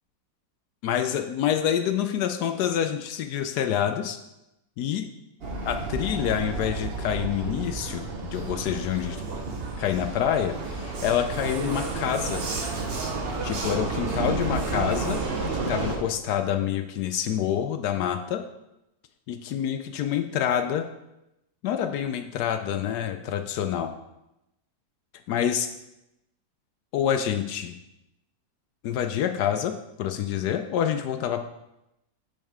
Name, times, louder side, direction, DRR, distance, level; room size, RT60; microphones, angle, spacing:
voice 1, 0.8-4.2 4.8-5.1 5.7-9.2 9.8-12.4 13.4-15.2 15.5-18.4 19.3-20.8 21.6-23.9 25.3-25.7 26.9-27.8 28.8-29.7 30.0-31.4, left 9 dB, 75° left, 7 dB, 1.0 m, -27 dB
Vehicle, 5.4-16.0, right 3 dB, 45° right, 0.8 m, -31 dB
8.8 x 5.3 x 3.6 m, 0.91 s
omnidirectional pair, 2.0 m